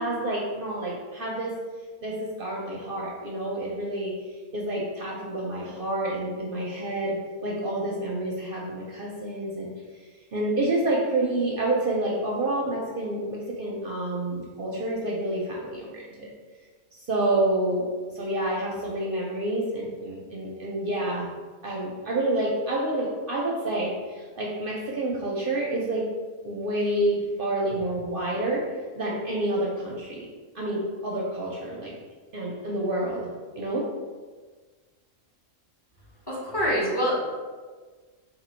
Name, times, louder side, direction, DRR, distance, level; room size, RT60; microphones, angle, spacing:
voice 1, 0.0-1.6 2.0-4.1 4.5-7.2 7.4-9.7 10.3-16.3 17.1-17.9 18.1-21.3 21.6-26.0 26.4-28.6 28.9-30.3 30.5-31.9 32.3-33.3 33.6-33.9, right 1 dB, 55° right, -3 dB, 0.6 m, -28 dB
voice 2, 36.3-37.3, equal, 20° left, -7 dB, 0.9 m, -25 dB
3.1 x 2.9 x 4.3 m, 1.4 s
omnidirectional pair, 1.3 m